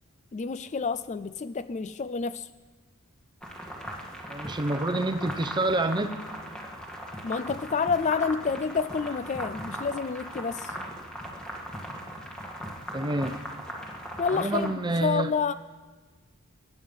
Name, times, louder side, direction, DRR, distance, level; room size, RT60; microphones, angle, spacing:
voice 1, 0.3-2.5 7.2-10.7 14.2-14.7 15.0-15.5, left 5 dB, 35° left, 13 dB, 0.4 m, -29 dB
sound 1, 3.4-14.7, equal, 5° left, 2.0 m, -39 dB
voice 2, 4.3-6.2 12.9-13.4 14.3-15.3, right 2 dB, 20° right, 9 dB, 0.8 m, -27 dB
22.0 x 9.6 x 5.6 m, 1.4 s
head